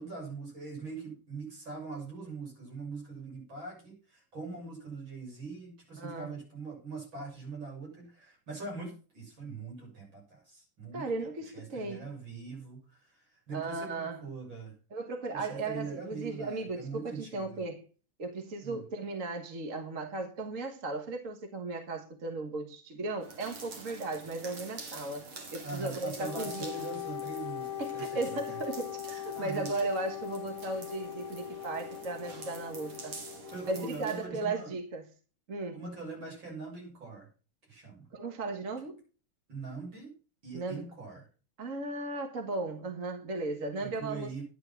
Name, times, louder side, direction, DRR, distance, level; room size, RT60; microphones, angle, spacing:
voice 1, 0.0-14.7 15.3-17.6 18.6-18.9 25.6-28.6 29.3-29.7 33.5-34.7 35.7-37.3 37.7-38.1 39.5-40.1 40.4-41.3 43.8-44.4, right 4 dB, 65° right, 7.6 m, -42 dB
voice 2, 6.0-6.3 10.9-12.1 13.5-14.2 14.9-17.8 18.2-25.2 25.5-26.7 27.8-33.2 33.7-35.1 35.5-35.8 38.1-39.0 40.5-40.8 41.6-44.4, right 3 dB, 40° right, 1.8 m, -36 dB
sound 1, 23.2-34.3, right 3 dB, 85° right, 3.4 m, -47 dB
Wind instrument woodwind instrument, 26.2-33.9, left 13 dB, 60° left, 1.0 m, -41 dB
11.5 x 9.4 x 5.9 m
omnidirectional pair, 2.3 m